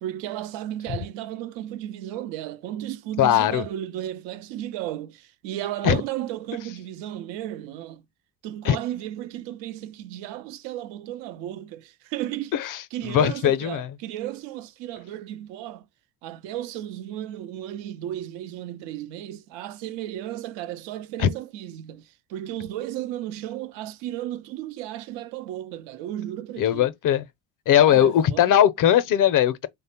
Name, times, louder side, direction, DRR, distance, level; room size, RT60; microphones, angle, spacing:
voice 1, 0.0-8.0 8.4-12.5 12.9-15.9 16.2-26.9 27.7-28.5, right 12 dB, 75° right, 0.6 m, -34 dB
voice 2, 3.2-3.6 5.8-6.0 8.6-8.8 12.5-13.9 21.2-21.3 26.6-27.3 27.7-29.7, left 10 dB, 45° left, 0.6 m, -20 dB
3.2 x 2.1 x 4.2 m
hypercardioid pair, 65°, 45 cm